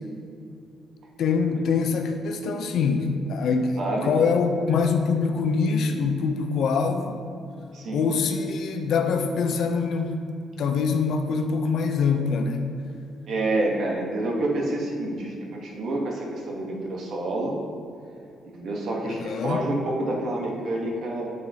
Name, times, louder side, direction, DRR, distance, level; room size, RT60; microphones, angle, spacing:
voice 1, 1.2-7.2 7.9-10.2 10.6-12.7 19.1-19.6, left 5 dB, 60° left, 5 dB, 0.5 m, -24 dB
voice 2, 3.8-4.2 7.7-8.1 13.3-17.6 18.4-21.3, right 2 dB, 55° right, -1 dB, 1.2 m, -28 dB
7.8 x 5.6 x 2.8 m, 2.5 s
cardioid pair, 160°, 0 cm